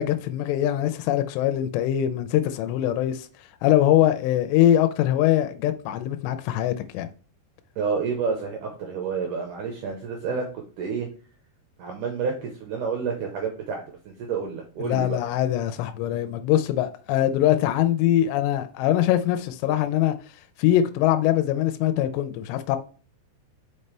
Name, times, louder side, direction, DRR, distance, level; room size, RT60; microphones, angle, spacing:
voice 1, 0.0-3.3 3.6-7.1 14.8-20.2 20.6-22.8, left 12 dB, 85° left, 2.8 m, -22 dB
voice 2, 7.8-10.5 10.8-11.1 11.8-15.2, right 5 dB, 75° right, 1.9 m, -29 dB
5.5 x 5.4 x 3.3 m
omnidirectional pair, 5.0 m